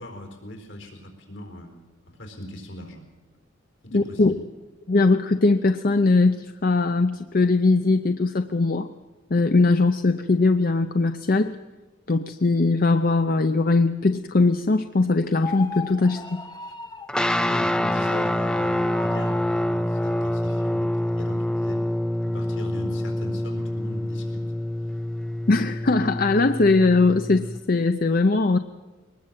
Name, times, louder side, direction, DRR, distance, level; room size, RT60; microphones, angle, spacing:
voice 1, 0.0-3.0 3.3-3.4 3.8-4.4 17.4-21.9 22.3-24.5, left 1 dB, 70° left, 4 dB, 4.3 m, -40 dB
voice 2, 3.9-4.4 4.9-8.9 9.3-11.6 12.1-16.4 25.5-28.6, left 3 dB, 50° left, 9 dB, 0.7 m, -20 dB
sound 1, 15.3-17.2 18.5-19.5, left 5 dB, 20° left, 1.2 m, -37 dB
sound 2, 17.1-27.6, left 1 dB, 5° left, 0.7 m, -26 dB
22.5 x 19.5 x 7.5 m, 1.2 s
head